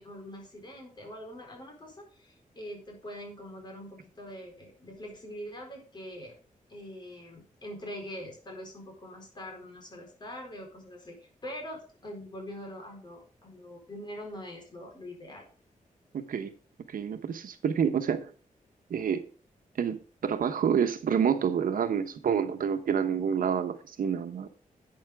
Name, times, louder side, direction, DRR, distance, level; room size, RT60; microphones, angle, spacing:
voice 1, 0.0-6.3 6.7-15.5, equal, 30° left, 1 dB, 4.3 m, -43 dB
voice 2, 16.1-16.5 16.9-18.3 18.9-19.2 19.8-24.5, right 7 dB, 80° right, 9 dB, 1.1 m, -28 dB
11.5 x 8.7 x 3.6 m, 0.40 s
wide cardioid pair, 175°, 14 cm